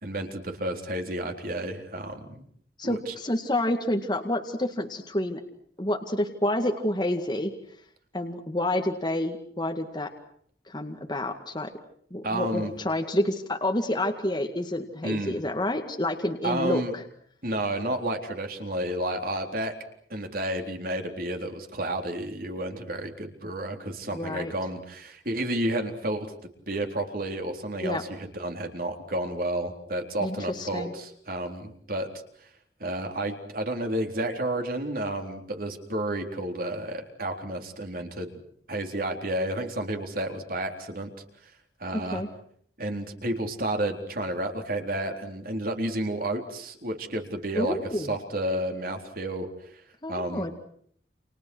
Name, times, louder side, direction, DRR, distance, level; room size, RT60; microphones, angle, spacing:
voice 1, 0.0-2.4 2.8-3.1 12.2-12.7 15.0-15.4 16.4-16.9 17.4-19.7 20.1-26.3 26.7-32.1 32.4-32.5 32.8-38.3 38.7-41.1 41.4-41.5 41.8-42.2 42.8-49.5 50.1-50.5, right 1 dB, 55° right, 4 dB, 3.9 m, -31 dB
voice 2, 2.8-5.4 5.8-7.5 8.1-10.1 10.7-11.7 12.1-17.0 24.1-24.5 27.8-28.0 30.2-30.9 41.9-42.3 47.5-48.2 50.0-50.5, left 1 dB, 25° left, 4 dB, 2.2 m, -28 dB
30.0 x 28.5 x 6.3 m, 0.64 s
head